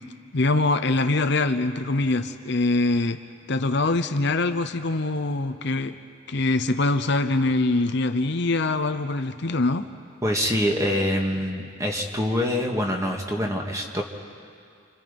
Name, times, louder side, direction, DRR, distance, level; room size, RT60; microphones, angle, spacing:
voice 1, 0.3-3.2 3.5-6.0 6.3-9.9, left 2 dB, 55° left, 8 dB, 0.8 m, -23 dB
voice 2, 10.2-14.0, equal, 15° right, 1 dB, 1.9 m, -25 dB
29.5 x 27.0 x 5.4 m, 2.3 s
head